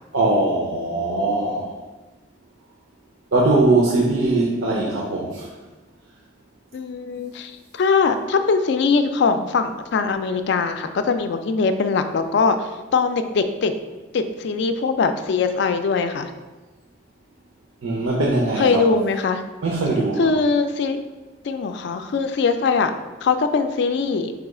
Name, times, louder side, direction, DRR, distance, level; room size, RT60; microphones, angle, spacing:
voice 1, 0.1-1.7 3.3-5.5 17.8-18.9 19.6-20.3, right 2 dB, 85° right, -4 dB, 0.7 m, -20 dB
voice 2, 6.7-13.7 14.1-16.3 18.6-19.4 20.2-21.0 21.4-22.9 23.2-24.3, left 4 dB, 60° left, 8 dB, 0.3 m, -21 dB
4.7 x 2.3 x 4.8 m, 1.2 s
head